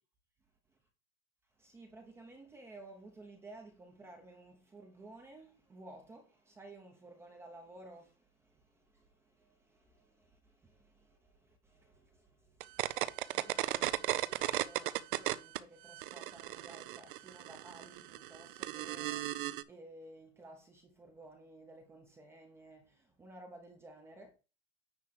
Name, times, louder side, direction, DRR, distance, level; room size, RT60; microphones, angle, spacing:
voice 1, 1.5-24.3, right 2 dB, 10° right, 0.7 m, -55 dB
sound 1, 12.6-15.6 15.9-19.6, right 15 dB, 50° right, 0.5 m, -35 dB
9.5 x 3.2 x 6.3 m
supercardioid pair, 170°, 33 cm